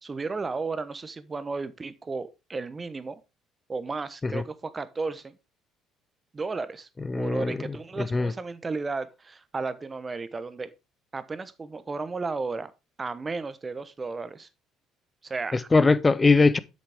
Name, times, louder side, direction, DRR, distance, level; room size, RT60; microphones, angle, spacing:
voice 1, 0.0-3.2 3.7-5.3 6.3-6.9 7.2-10.7 11.1-12.7 13.0-14.5 15.2-15.7, right 4 dB, 30° right, 1.0 m, -33 dB
voice 2, 7.1-7.6 8.0-8.3 15.5-16.6, left 3 dB, 25° left, 0.7 m, -21 dB
8.1 x 6.5 x 3.6 m
hypercardioid pair, 60°, 0 cm